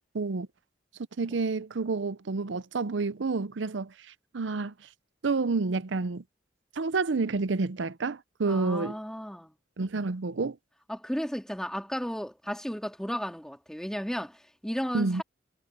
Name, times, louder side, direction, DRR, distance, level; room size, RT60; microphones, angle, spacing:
voice 1, 0.1-0.5 1.2-3.9 4.3-4.7 5.2-6.2 6.8-9.0 9.8-10.6 14.9-15.2, right 3 dB, 75° right, 0.6 m, -29 dB
voice 2, 8.5-9.5 10.9-15.2, equal, 5° left, 2.4 m, -34 dB
head